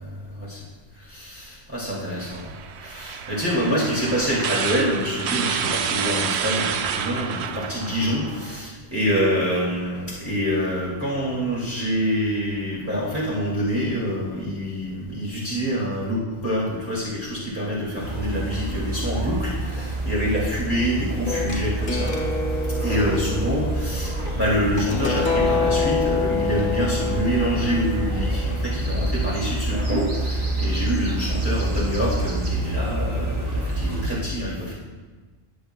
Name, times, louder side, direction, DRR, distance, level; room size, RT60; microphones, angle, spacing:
voice 1, 1.1-2.5 2.8-22.1 22.8-34.7, equal, 10° right, -7 dB, 2.3 m, -26 dB
sound 1, 2.2-8.7, right 8 dB, 85° right, 0.9 m, -29 dB
sound 2, 18.0-34.1, right 1 dB, 50° right, 2.0 m, -27 dB
sound 3, 21.3-29.0, left 4 dB, 55° left, 1.8 m, -28 dB
20.0 x 8.0 x 2.3 m, 1.3 s
omnidirectional pair, 1.1 m